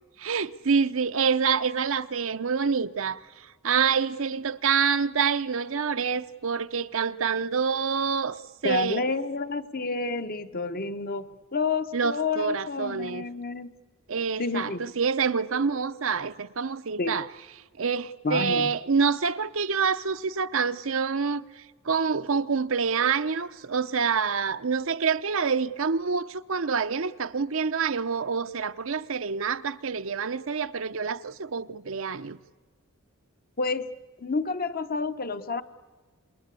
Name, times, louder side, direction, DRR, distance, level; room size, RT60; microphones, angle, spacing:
voice 1, 0.2-9.1 11.9-13.2 14.1-17.3 17.8-32.4, right 5 dB, 65° right, 0.7 m, -27 dB
voice 2, 8.6-13.7 14.4-14.8 17.0-17.2 18.2-18.7 33.6-33.9 34.2-35.6, left 3 dB, 45° left, 1.0 m, -29 dB
27.5 x 21.5 x 8.3 m
head